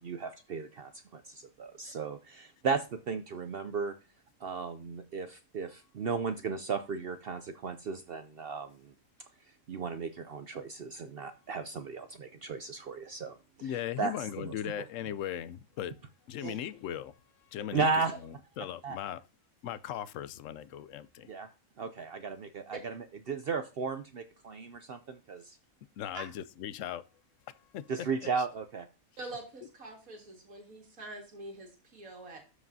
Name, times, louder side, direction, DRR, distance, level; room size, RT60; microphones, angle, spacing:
voice 1, 0.0-3.9 4.4-8.9 9.7-13.4 14.0-14.1 14.4-14.5 16.4-16.6 17.7-18.2 18.8-19.0 21.3-21.5 21.8-25.6 27.9-28.9, right 5 dB, 60° right, 0.6 m, -35 dB
voice 2, 13.6-16.0 16.3-19.3 19.6-21.4 26.0-27.1 27.5-27.9 28.2-28.5, left 10 dB, 70° left, 0.9 m, -39 dB
voice 3, 29.2-32.4, right 2 dB, 75° right, 2.3 m, -45 dB
13.0 x 4.9 x 2.7 m
omnidirectional pair, 1.5 m